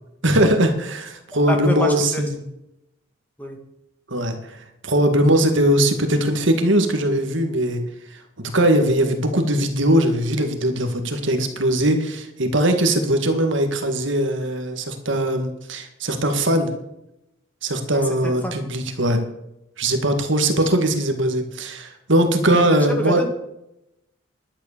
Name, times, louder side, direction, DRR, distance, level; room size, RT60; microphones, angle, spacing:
voice 1, 0.2-2.4 4.1-7.8 8.1-16.7 17.6-19.2 19.8-23.2, right 1 dB, 60° right, 6 dB, 2.0 m, -20 dB
voice 2, 1.5-2.2 3.4-3.6 17.9-18.5 22.5-22.7 23.0-23.3, equal, 10° left, 3 dB, 2.0 m, -27 dB
11.5 x 9.9 x 6.8 m, 0.83 s
head